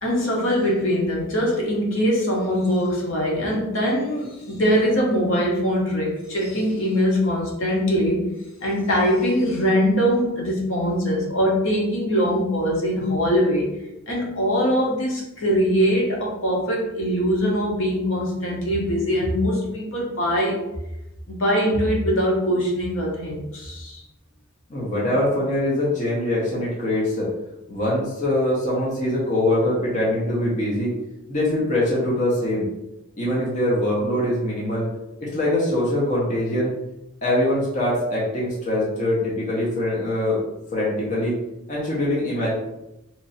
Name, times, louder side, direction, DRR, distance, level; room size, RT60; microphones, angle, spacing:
voice 1, 0.0-8.2 8.6-13.7 14.1-20.6 21.3-24.0, equal, 60° left, -3 dB, 1.0 m, -22 dB
voice 2, 24.7-27.3 27.7-31.0 31.3-32.7 33.2-34.9 35.2-36.7 37.2-40.4 40.7-41.4 41.7-42.5, left 1 dB, 35° left, -5 dB, 0.8 m, -23 dB
2.9 x 2.6 x 4.0 m, 0.94 s
head